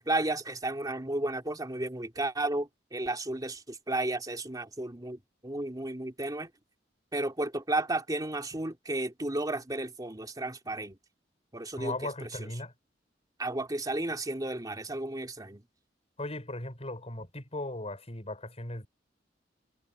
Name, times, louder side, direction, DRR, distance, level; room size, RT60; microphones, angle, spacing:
voice 1, 0.0-6.5 7.1-11.0 11.5-11.9 12.4-12.5 13.4-15.6, right 2 dB, 20° right, 2.9 m, -33 dB
voice 2, 11.7-12.7 16.2-18.9, left 2 dB, 35° left, 6.9 m, -37 dB
head